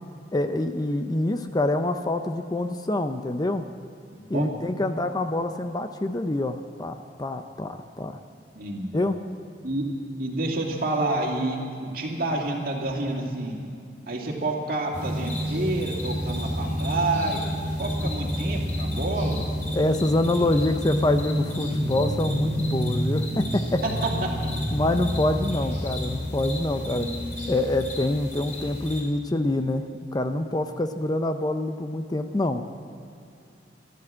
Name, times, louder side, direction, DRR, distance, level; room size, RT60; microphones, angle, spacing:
voice 1, 0.3-3.6 4.3-8.2 8.9-9.2 19.2-19.3 19.7-23.8 24.2-24.3 24.7-27.1 27.5-32.6, left 1 dB, 20° left, 8 dB, 0.6 m, -26 dB
voice 2, 4.1-4.5 8.5-9.1 9.6-9.8 10.2-13.6 14.1-17.4 17.8-19.4 23.8-23.9 24.2-24.5 26.9-27.5, right 2 dB, 55° right, 0 dB, 2.5 m, -29 dB
sound 1, 14.9-29.0, equal, 45° left, 3.2 m, -29 dB
14.0 x 12.5 x 7.5 m, 2.5 s
head